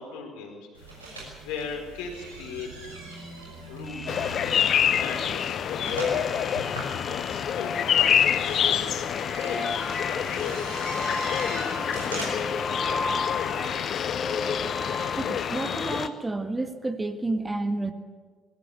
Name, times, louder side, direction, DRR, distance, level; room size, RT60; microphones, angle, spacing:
voice 1, 0.0-3.0 3.6-6.6 7.2-10.9 11.3-12.5, left 5 dB, 65° left, 2 dB, 4.7 m, -39 dB
sound 1, 0.7-12.6, right 2 dB, 85° right, 6.1 m, -41 dB
sound 2, 3.9-16.1, left 3 dB, 30° left, 1.9 m, -35 dB
sound 3, 4.1-16.1, left 9 dB, 50° left, 0.8 m, -27 dB
voice 2, 15.2-17.9, right 2 dB, 15° right, 7 dB, 1.7 m, -30 dB
20.5 x 18.0 x 8.5 m, 1.5 s
figure-of-eight pair, 55°, 0 cm